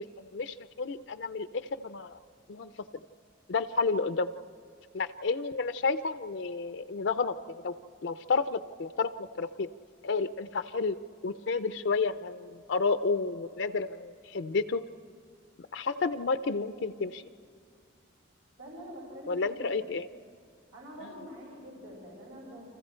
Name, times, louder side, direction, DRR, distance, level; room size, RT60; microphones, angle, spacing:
voice 1, 0.0-2.2 2.5-2.7 3.5-4.3 4.9-9.7 10.0-11.0 11.2-14.8 15.7-17.2 19.3-20.1 21.0-21.1, left 4 dB, 65° left, 11 dB, 0.5 m, -31 dB
voice 2, 18.6-19.8 20.7-22.7, equal, 80° right, -4 dB, 4.9 m, -45 dB
29.5 x 25.5 x 4.4 m, 2.2 s
head